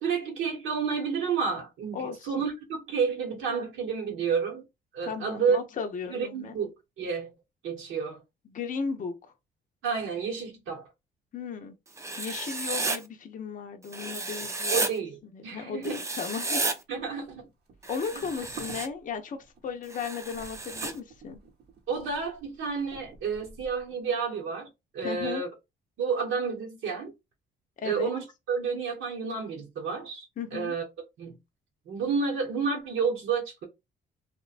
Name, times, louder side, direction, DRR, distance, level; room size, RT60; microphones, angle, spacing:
voice 1, 0.0-4.6 4.9-5.6 6.1-7.3 7.6-8.2 9.8-10.9 14.7-16.0 16.9-17.5 21.9-24.7 24.9-25.5 26.0-27.1 27.8-30.3 30.5-30.8 31.2-31.4 31.9-33.6, right 5 dB, 80° right, 0.9 m, -30 dB
voice 2, 1.9-2.4 5.1-6.6 8.5-9.1 11.3-11.8 12.2-14.8 15.3-16.6 17.9-19.4 19.6-21.4 25.0-25.4 27.8-28.2 30.4-30.7, left 6 dB, 40° left, 0.5 m, -35 dB
Writing, 12.0-13.0 13.9-14.9 15.8-16.7 17.8-18.9 19.9-20.9, right 2 dB, 15° right, 0.4 m, -32 dB
sound 1, 16.9-23.9, right 4 dB, 55° right, 0.8 m, -49 dB
2.7 x 2.2 x 2.4 m
cardioid pair, 90°, 20 cm